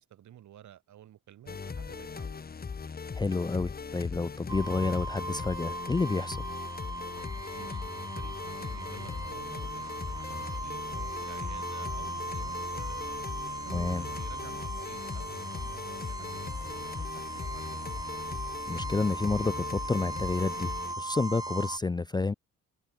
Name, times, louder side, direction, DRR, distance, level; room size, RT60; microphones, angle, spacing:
voice 1, 0.0-2.4 7.5-7.9 8.2-13.1 13.6-18.0, right 11 dB, 70° right, 5.4 m, -51 dB
sound 1, 1.5-20.9, left 5 dB, 30° left, 1.6 m, -39 dB
voice 2, 3.1-6.4 13.7-14.0 18.7-20.7 21.0-22.3, left 3 dB, 15° left, 0.5 m, -29 dB
sound 2, 4.5-21.8, right 2 dB, 10° right, 1.7 m, -38 dB
cardioid pair, 90°, 30 cm